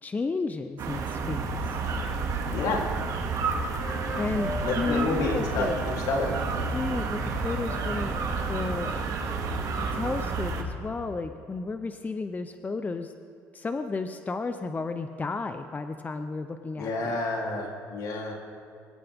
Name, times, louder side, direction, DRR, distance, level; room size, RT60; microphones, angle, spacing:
voice 1, 0.0-1.8 4.2-5.8 6.7-8.2 8.5-9.0 9.9-13.1 13.5-17.2, left 4 dB, 25° left, 8 dB, 0.8 m, -32 dB
sound 1, 0.8-10.6, right 4 dB, 55° right, 2.3 m, -30 dB
voice 2, 2.5-2.9 4.6-6.3 16.8-18.3, left 3 dB, 65° left, -1 dB, 3.5 m, -29 dB
Wind instrument woodwind instrument, 2.5-6.0 6.2-10.1, equal, 5° left, 3.6 m, -42 dB
24.5 x 12.5 x 3.7 m, 2.6 s
supercardioid pair, 80°, 7 cm